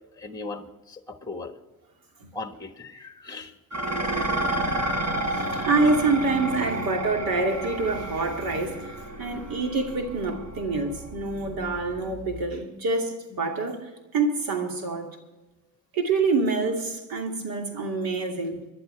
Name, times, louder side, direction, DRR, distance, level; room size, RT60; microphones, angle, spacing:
voice 1, 0.2-1.6 2.3-3.5 3.8-4.4, left 3 dB, 10° left, 1.5 m, -39 dB
Dishes pots and pans, 3.7-12.5, right 1 dB, 50° right, 5.3 m, -31 dB
voice 2, 5.3-8.9 9.2-15.1 15.9-18.6, right 3 dB, 85° right, 2.8 m, -26 dB
24.0 x 11.5 x 3.4 m
cardioid pair, 105°, 34 cm